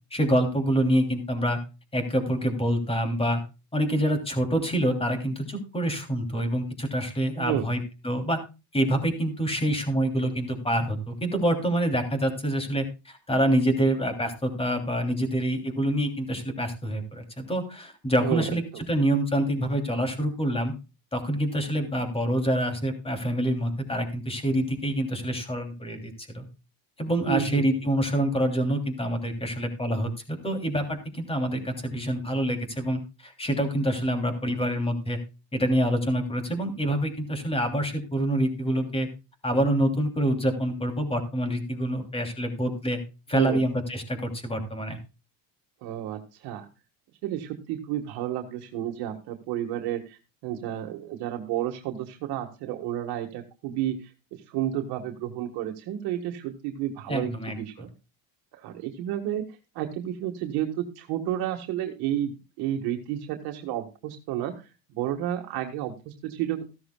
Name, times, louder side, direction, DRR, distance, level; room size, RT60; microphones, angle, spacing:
voice 1, 0.1-1.6 1.9-3.4 3.7-8.4 8.7-20.7 21.1-26.4 27.0-35.2 35.5-39.1 39.4-43.0 43.3-45.0 57.1-57.6, right 1 dB, 15° left, 6 dB, 3.0 m, -26 dB
voice 2, 7.4-7.7 18.2-18.4 27.3-27.6 43.3-43.6 45.8-46.7 47.2-54.1 54.5-57.9 58.5-59.4 59.8-64.5 64.9-66.6, right 11 dB, 65° right, 4 dB, 1.7 m, -31 dB
14.5 x 13.0 x 2.3 m, 0.29 s
cardioid pair, 130°, 41 cm